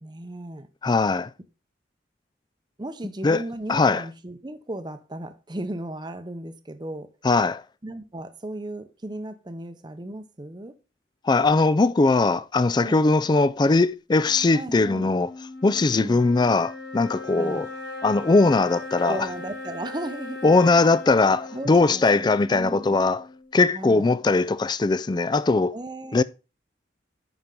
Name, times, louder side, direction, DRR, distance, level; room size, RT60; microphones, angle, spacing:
voice 1, 0.0-0.7 2.8-7.1 7.8-10.7 12.8-13.0 14.5-15.1 15.9-16.3 17.4-17.7 19.0-20.5 21.5-23.0 23.7-24.1 25.7-26.2, right 1 dB, 25° right, 0.7 m, -36 dB
voice 2, 0.8-1.3 3.2-3.4 3.7-4.0 7.2-7.6 11.2-15.3 15.6-17.7 18.0-19.3 20.4-23.2 23.5-25.7 26.1-26.2, left 3 dB, 25° left, 0.3 m, -20 dB
sound 1, 14.2-23.6, left 2 dB, 75° left, 5.1 m, -39 dB
11.0 x 4.4 x 3.7 m
head